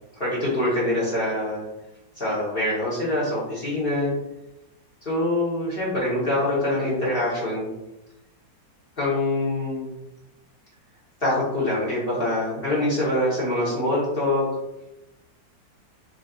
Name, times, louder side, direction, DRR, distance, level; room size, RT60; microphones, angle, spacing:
voice 1, 0.2-1.6 2.2-4.1 5.0-7.7 9.0-9.9 11.2-14.4, left 1 dB, 45° left, -7 dB, 0.7 m, -24 dB
4.0 x 2.5 x 2.3 m, 0.93 s
omnidirectional pair, 2.1 m